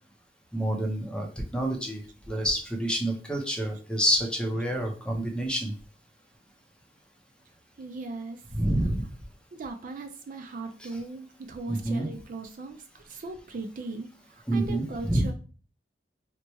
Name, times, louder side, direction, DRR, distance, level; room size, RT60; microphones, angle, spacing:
voice 1, 0.5-1.3 1.5-5.7 8.5-9.1 10.8-10.9 11.7-12.1 14.5-15.3, right 1 dB, 5° left, 1 dB, 0.6 m, -28 dB
voice 2, 7.8-8.4 9.5-15.3, right 3 dB, 50° right, 7 dB, 0.4 m, -39 dB
3.0 x 2.1 x 4.2 m, 0.38 s
head